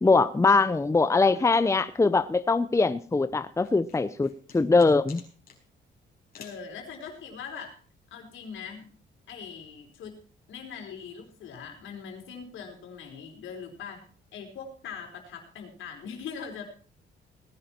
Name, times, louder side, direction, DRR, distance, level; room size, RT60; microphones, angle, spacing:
voice 1, 0.0-5.2, left 3 dB, 15° left, 13 dB, 0.7 m, -22 dB
voice 2, 1.0-1.5 6.4-7.7 8.1-8.9 9.3-10.2 10.5-14.0 14.3-16.6, left 6 dB, 80° left, 3 dB, 4.4 m, -41 dB
sound 1, 3.6-5.6 6.3-6.7, left 5 dB, 50° left, 4.9 m, -49 dB
18.5 x 10.5 x 4.5 m, 0.42 s
cardioid pair, 90°, 20 cm